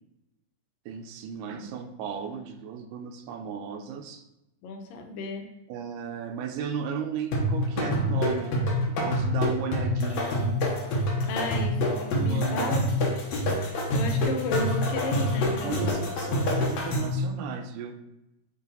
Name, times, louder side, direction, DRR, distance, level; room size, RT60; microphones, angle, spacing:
voice 1, 0.9-4.2 5.7-8.5 8.9-10.6 11.9-12.7 15.6-18.0, right 8 dB, 80° right, 6 dB, 2.1 m, -35 dB
voice 2, 4.6-5.5 11.2-12.8 13.1-16.0, left 1 dB, 85° left, 4 dB, 2.4 m, -34 dB
sound 1, 7.3-17.2, left 1 dB, 65° left, 2.1 m, -26 dB
8.6 x 3.2 x 4.0 m, 0.88 s
omnidirectional pair, 3.8 m